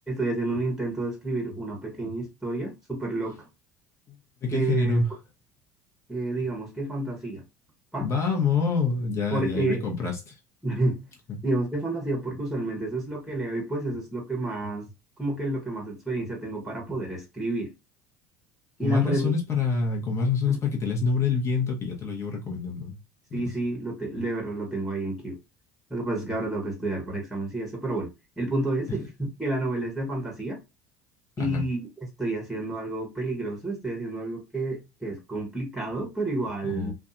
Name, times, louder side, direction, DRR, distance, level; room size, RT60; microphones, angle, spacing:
voice 1, 0.1-3.5 4.5-5.0 6.1-7.4 7.9-8.1 9.3-9.8 10.6-11.0 11.4-14.9 15.2-17.7 18.8-19.3 20.5-20.6 23.3-25.4 25.9-28.1 28.4-30.6 31.4-31.9 32.2-36.9, right 2 dB, 5° right, 1.1 m, -30 dB
voice 2, 4.4-5.1 8.0-10.3 18.8-23.0 23.3-23.4 31.4-31.6 36.7-36.9, left 4 dB, 40° left, 1.1 m, -26 dB
2.6 x 2.3 x 2.5 m
hypercardioid pair, 70°, 8 cm